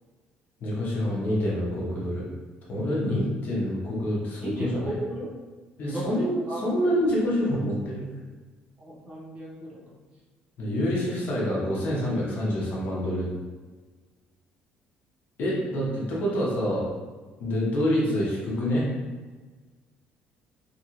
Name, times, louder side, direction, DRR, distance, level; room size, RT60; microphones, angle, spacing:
voice 1, 0.6-2.3 2.7-4.9 5.8-8.1 10.6-13.3 15.4-16.9 17.4-18.9, equal, 55° left, -5 dB, 0.9 m, -27 dB
voice 2, 4.4-5.3 5.8-6.6 8.8-9.8, right 1 dB, 30° right, -5 dB, 0.7 m, -34 dB
2.9 x 2.5 x 2.9 m, 1.3 s
cardioid pair, 150°, 4 cm